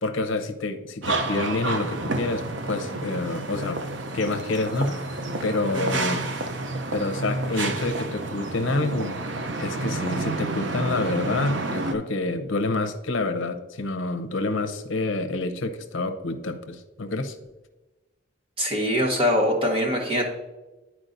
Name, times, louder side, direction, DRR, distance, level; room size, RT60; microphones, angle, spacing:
voice 1, 0.0-3.8 4.1-5.2 5.4-6.3 6.9-9.2 9.6-17.4, left 2 dB, 75° left, 8 dB, 0.7 m, -27 dB
sound 1, 1.0-11.9, right 2 dB, 65° right, 0.6 m, -30 dB
voice 2, 5.7-6.1 18.6-20.2, equal, 25° right, -1 dB, 1.4 m, -23 dB
11.5 x 4.6 x 2.6 m, 1.1 s
head